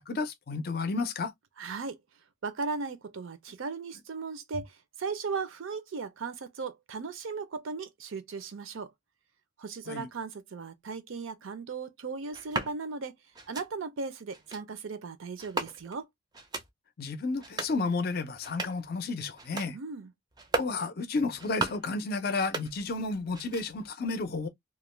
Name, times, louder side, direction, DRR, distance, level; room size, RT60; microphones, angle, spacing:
voice 1, 0.0-1.3 9.9-10.1 17.0-19.8 20.6-24.5, left 3 dB, 45° left, 0.4 m, -32 dB
voice 2, 1.6-2.0 2.4-8.9 9.6-13.1 13.5-16.1 19.7-20.1, right 4 dB, 75° right, 0.5 m, -37 dB
sound 1, 12.3-12.7 13.3-13.7 14.3-14.6 15.4-16.0 16.3-16.7 17.3-17.8 18.3-18.9 19.3-19.7 20.3-20.8 21.3-21.9 22.3-23.1 23.3-23.9, right 3 dB, 20° right, 0.4 m, -36 dB
2.4 x 2.1 x 3.1 m
head